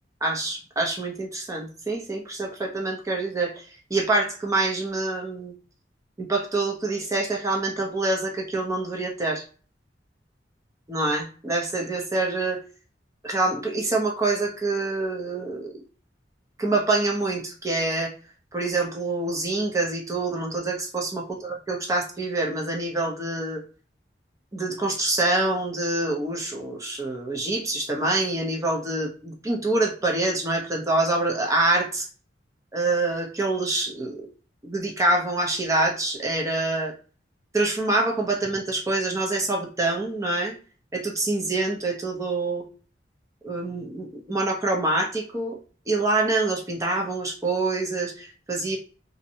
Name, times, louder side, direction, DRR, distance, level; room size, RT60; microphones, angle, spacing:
voice 1, 0.2-5.5 6.2-9.4 10.9-12.6 13.2-15.8 16.6-18.1 18.5-23.6 24.5-32.1 32.7-34.2 34.6-36.9 37.5-40.6 40.9-42.6 43.4-45.6 45.9-48.8, right 2 dB, 15° right, 0 dB, 0.6 m, -26 dB
2.6 x 2.1 x 2.7 m, 0.39 s
head